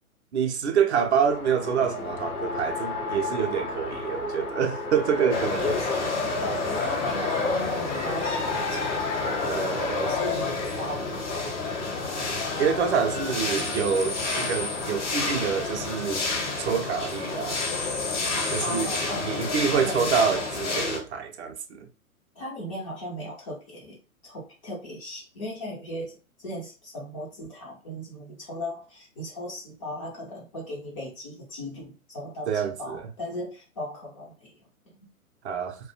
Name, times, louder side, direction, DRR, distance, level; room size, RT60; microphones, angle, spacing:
voice 1, 0.3-5.7 9.5-10.1 12.6-16.3 16.6-17.6 18.5-18.9 19.2-21.9 32.5-33.0 35.4-35.8, right 7 dB, 50° right, 0.5 m, -27 dB
Race car auto racing, 1.0-10.2, left 3 dB, 90° left, 0.7 m, -32 dB
sound 1, 5.3-21.0, left 3 dB, 55° left, 1.0 m, -30 dB
voice 2, 5.6-6.1 6.4-9.3 10.0-11.1 11.3-11.9 18.6-20.5 22.4-24.0 24.2-34.5 34.9-35.1, left 1 dB, 25° left, 0.5 m, -37 dB
2.3 x 2.1 x 2.6 m
figure-of-eight pair, 120°, 44 cm